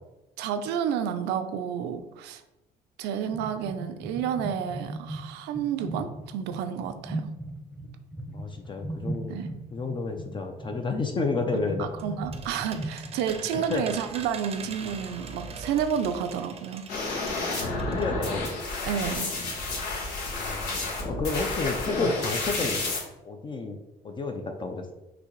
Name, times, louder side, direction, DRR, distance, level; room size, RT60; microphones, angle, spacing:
voice 1, 0.4-2.4 3.0-7.3 9.3-9.5 11.5-17.3 18.8-19.4, right 8 dB, 85° right, 9 dB, 0.5 m, -31 dB
sound 1, 3.3-13.4, right 2 dB, ahead, 0.8 m, -38 dB
voice 2, 8.3-9.4 9.7-11.9 13.5-13.8 17.9-18.4 20.4-22.8 23.2-23.8 24.0-24.9, left 3 dB, 30° left, 4 dB, 0.4 m, -31 dB
sound 2, 11.6-18.5 18.8-18.9 19.1-19.2, right 5 dB, 35° right, 0.6 m, -42 dB
sound 3, 16.9-23.0, left 2 dB, 90° left, 1.4 m, -30 dB
5.9 x 2.8 x 3.1 m, 0.96 s
cardioid pair, 110°, 17 cm